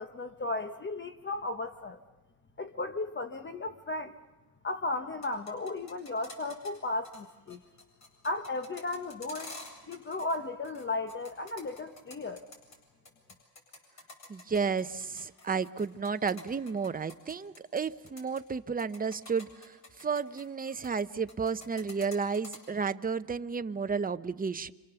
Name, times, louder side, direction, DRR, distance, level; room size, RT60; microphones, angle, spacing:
voice 1, 0.0-2.0 2.6-4.1 4.6-7.6 8.2-9.5 9.9-12.4, left 2 dB, 30° left, 7 dB, 1.1 m, -35 dB
sound 1, 5.1-6.8 7.0-7.2 7.5-10.4 10.6-12.8 13.1-17.8 18.1-18.4 18.8-21.0 21.3-22.6, left 2 dB, 45° left, 8.0 m, -48 dB
voice 2, 14.3-24.7, right 5 dB, 20° right, 11 dB, 0.8 m, -32 dB
26.5 x 26.0 x 7.0 m, 1.1 s
cardioid pair, 110°, 39 cm